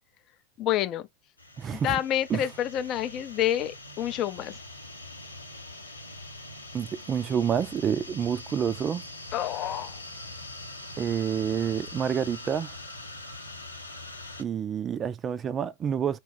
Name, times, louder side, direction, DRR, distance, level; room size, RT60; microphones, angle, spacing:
voice 1, 0.6-1.1 1.7-4.6 9.3-10.0, left 11 dB, 35° left, 0.5 m, -28 dB
sound 1, 1.4-14.4, left 2 dB, 85° left, 0.8 m, -43 dB
voice 2, 1.6-1.9 2.3-2.4 6.7-9.0 11.0-12.8 14.4-16.2, right 8 dB, 25° right, 0.4 m, -28 dB
4.5 x 2.3 x 3.2 m
figure-of-eight pair, 90°, 0 cm